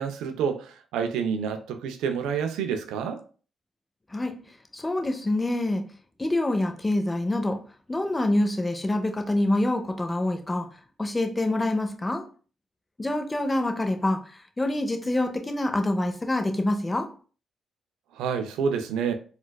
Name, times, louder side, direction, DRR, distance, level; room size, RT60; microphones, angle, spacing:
voice 1, 0.0-3.2 18.1-19.1, right 6 dB, 85° right, 0.3 m, -28 dB
voice 2, 4.7-5.8 6.2-7.6 7.9-10.7 11.0-12.2 13.0-14.2 14.6-17.1, left 1 dB, 20° left, 0.6 m, -26 dB
3.9 x 2.3 x 2.2 m
supercardioid pair, 55°, 0 cm